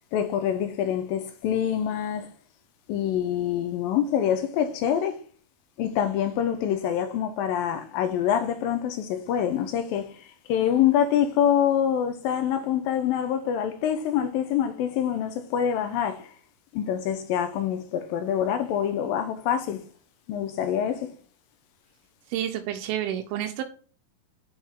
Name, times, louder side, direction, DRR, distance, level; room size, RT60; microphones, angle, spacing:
voice 1, 0.1-2.3 2.9-5.2 5.8-16.3 16.7-19.8 20.3-21.1, left 9 dB, 80° left, 2.3 m, -25 dB
voice 2, 22.3-23.6, right 11 dB, 90° right, 2.6 m, -29 dB
9.7 x 5.5 x 3.5 m
omnidirectional pair, 4.3 m